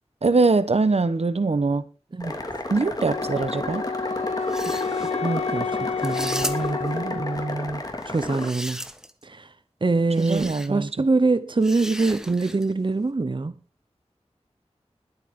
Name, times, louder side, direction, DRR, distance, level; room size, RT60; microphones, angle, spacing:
voice 1, 0.2-1.9 2.7-3.8 10.2-10.9, right 3 dB, 65° right, 1.0 m, -22 dB
sound 1, 2.2-8.5, left 1 dB, 35° left, 2.8 m, -32 dB
Wind instrument woodwind instrument, 3.0-7.9, left 5 dB, 70° left, 1.4 m, -30 dB
sound 2, 4.4-5.1 6.0-6.9 8.1-9.2 10.1-10.7 11.6-12.7, equal, 5° right, 1.3 m, -35 dB
voice 2, 4.7-8.8 9.2-9.5 9.8-13.6, right 3 dB, 45° right, 0.9 m, -25 dB
21.0 x 8.3 x 3.8 m
wide cardioid pair, 65°, 11 cm